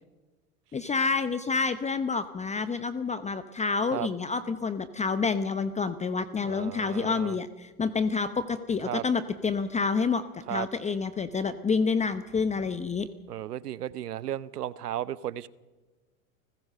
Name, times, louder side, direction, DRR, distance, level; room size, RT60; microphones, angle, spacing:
voice 1, 0.7-13.1, left 4 dB, 15° left, 0.8 m, -28 dB
voice 2, 6.4-7.4 8.8-9.0 10.5-10.7 13.3-15.5, right 11 dB, 90° right, 0.9 m, -34 dB
29.5 x 15.0 x 6.7 m
hypercardioid pair, 100°, 45 cm